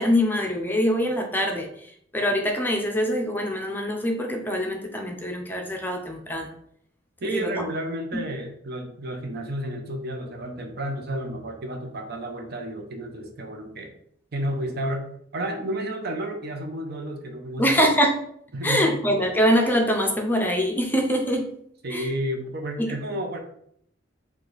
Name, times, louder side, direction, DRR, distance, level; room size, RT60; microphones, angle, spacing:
voice 1, 0.0-6.5 7.3-7.7 8.1-8.2 17.6-18.1 18.6-21.5 21.9-22.1 22.8-23.0, equal, 10° left, 2 dB, 0.5 m, -24 dB
voice 2, 7.2-13.9 14.3-15.0 15.3-17.8 18.5-19.0 21.8-23.4, right 1 dB, 55° right, 4 dB, 0.7 m, -31 dB
4.9 x 2.3 x 3.9 m, 0.67 s
head